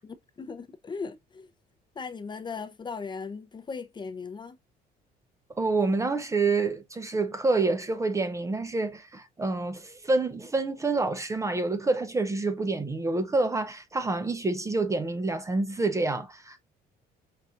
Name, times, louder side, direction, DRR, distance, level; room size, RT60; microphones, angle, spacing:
voice 1, 0.0-1.5 1.9-4.6, left 5 dB, 25° left, 0.6 m, -38 dB
voice 2, 5.6-16.6, right 3 dB, 20° right, 0.6 m, -27 dB
5.6 x 2.5 x 2.5 m
cardioid pair, 110°, 17 cm